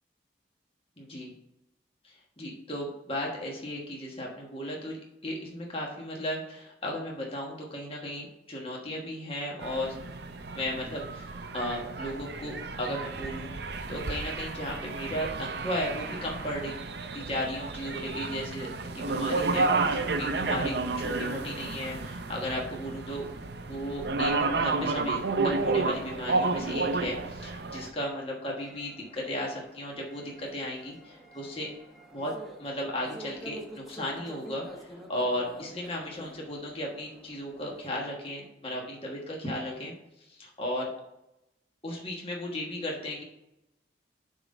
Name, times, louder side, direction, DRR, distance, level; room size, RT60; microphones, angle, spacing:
voice 1, 1.0-1.3 2.0-10.0 10.5-13.5 13.9-16.7 17.1-23.3 23.7-31.7 32.1-39.9 40.3-40.9 41.8-43.2, left 1 dB, 30° left, -2 dB, 1.3 m, -35 dB
sound 1, 9.6-27.9, right 3 dB, 60° right, 0.6 m, -31 dB
sound 2, 28.6-38.0, equal, ahead, 1.0 m, -48 dB
7.9 x 3.7 x 5.3 m, 0.87 s
head